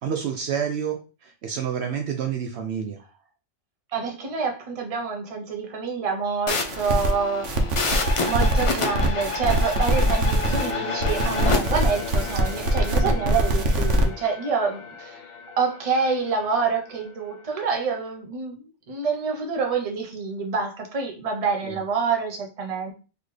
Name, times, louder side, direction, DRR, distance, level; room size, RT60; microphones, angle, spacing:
voice 1, 0.0-3.0 13.0-13.1 21.6-21.8, right 7 dB, 70° right, 5 dB, 0.8 m, -29 dB
voice 2, 3.9-7.5 8.3-15.3 15.6-22.9, right 5 dB, 35° right, 2 dB, 0.8 m, -27 dB
sound 1, 6.5-11.6, left 4 dB, 40° left, 0.5 m, -28 dB
sound 2, 6.7-7.1 7.4-10.7 11.0-14.0, right 1 dB, 85° right, 1.1 m, -23 dB
sound 3, 10.5-17.7, left 6 dB, 80° left, 1.0 m, -37 dB
4.0 x 2.9 x 3.2 m, 0.34 s
omnidirectional pair, 1.2 m